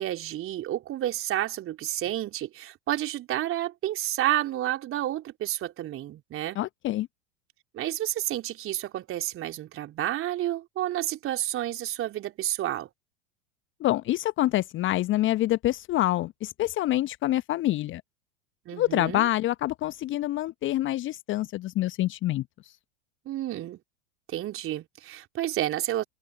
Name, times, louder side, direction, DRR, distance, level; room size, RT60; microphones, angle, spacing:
voice 1, 0.0-6.6 7.7-12.9 18.7-19.2 23.3-23.8 24.3-26.0, right 13 dB, 35° right, 3.8 m, -30 dB
voice 2, 6.5-7.1 13.8-18.0 18.8-22.4, left 15 dB, 30° left, 1.2 m, -26 dB
figure-of-eight pair, 85°, 38 cm